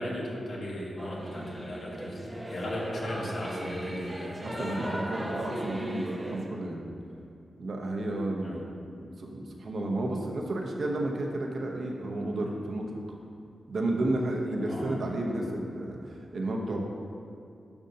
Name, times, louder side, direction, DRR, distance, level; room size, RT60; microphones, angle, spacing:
voice 1, 0.0-5.0 8.4-8.6 14.7-15.0, equal, 50° left, -3 dB, 1.4 m, -36 dB
Singing / Musical instrument, 1.0-6.5, right 1 dB, 10° right, 0.7 m, -37 dB
voice 2, 4.4-6.8 7.6-8.6 8.9-12.9 13.7-16.8, right 1 dB, 55° right, 0 dB, 0.8 m, -32 dB
10.5 x 6.5 x 2.8 m, 2.5 s
wide cardioid pair, 175°, 0 cm